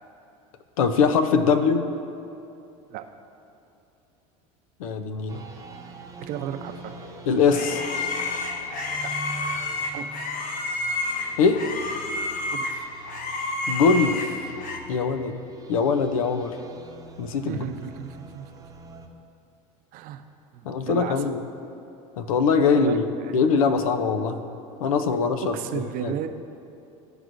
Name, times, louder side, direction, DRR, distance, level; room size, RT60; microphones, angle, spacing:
voice 1, 0.8-1.9 4.8-5.4 7.3-7.8 11.4-11.6 13.7-14.3 14.9-15.4 15.7-16.5 17.2-17.6 20.6-21.4 22.2-23.1 23.3-24.4 24.8-25.5 26.0-26.1, left 5 dB, 90° left, 9 dB, 0.6 m, -22 dB
sound 1, 5.3-19.1, right 3 dB, 20° right, 0.8 m, -44 dB
voice 2, 6.3-6.9 9.9-10.2 12.5-12.9 15.1-15.2 17.5-18.7 19.9-20.2 20.5-21.1 22.7-23.5 25.4-26.3, right 10 dB, 55° right, 7 dB, 0.6 m, -34 dB
sound 2, 6.9-14.8, left 3 dB, 50° left, 0.9 m, -30 dB
14.0 x 4.7 x 2.6 m, 2.8 s
supercardioid pair, 95°, 17 cm